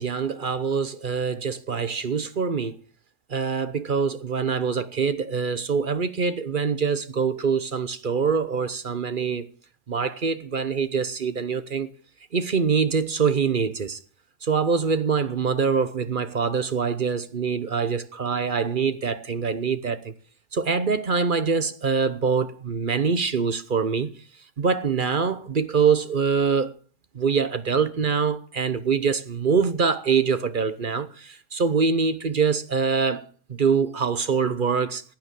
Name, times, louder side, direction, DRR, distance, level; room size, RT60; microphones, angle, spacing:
voice 1, 0.0-2.8 3.3-9.5 9.9-11.9 12.3-14.0 14.4-20.1 20.5-24.1 24.6-26.7 27.1-35.0, right 5 dB, 40° right, 0.9 m, -24 dB
15.5 x 9.0 x 7.5 m
omnidirectional pair, 1.5 m